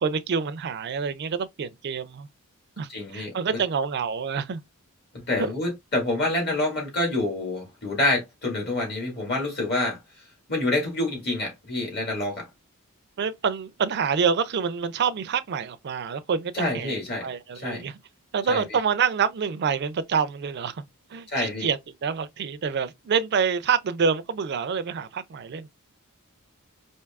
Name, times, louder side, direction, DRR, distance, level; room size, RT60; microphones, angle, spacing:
voice 1, 0.0-2.3 2.8-4.6 5.4-5.5 13.2-17.9 18.3-20.8 21.1-25.7, right 6 dB, 50° right, 0.4 m, -27 dB
voice 2, 2.9-3.6 5.3-10.0 10.5-12.5 16.5-17.3 17.5-17.8 18.5-18.6 21.3-21.7, left 2 dB, 45° left, 1.9 m, -27 dB
4.5 x 2.7 x 2.3 m
head